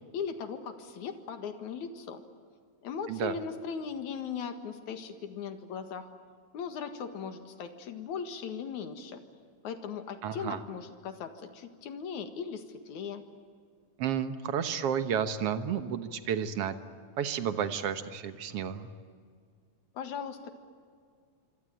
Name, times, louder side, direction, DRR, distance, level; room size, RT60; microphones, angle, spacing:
voice 1, 0.1-2.2 2.8-6.1 6.5-9.2 9.6-13.2 19.9-20.5, left 6 dB, 70° left, 7 dB, 3.1 m, -38 dB
voice 2, 10.2-10.6 14.0-16.7 17.2-18.9, right 8 dB, 60° right, 10 dB, 1.9 m, -31 dB
26.0 x 25.5 x 9.0 m, 2.1 s
omnidirectional pair, 3.5 m